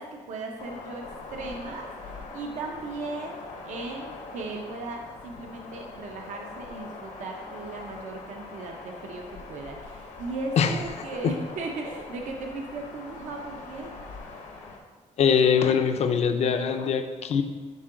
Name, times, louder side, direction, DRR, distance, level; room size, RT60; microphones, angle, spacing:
voice 1, 0.0-14.0, right 3 dB, 70° right, 1 dB, 0.8 m, -37 dB
sound 1, 0.6-14.8, left 3 dB, 80° left, 1.2 m, -42 dB
voice 2, 15.2-17.4, left 7 dB, 55° left, 7 dB, 0.6 m, -22 dB
10.5 x 3.8 x 3.8 m, 1.4 s
cardioid pair, 125°, 13 cm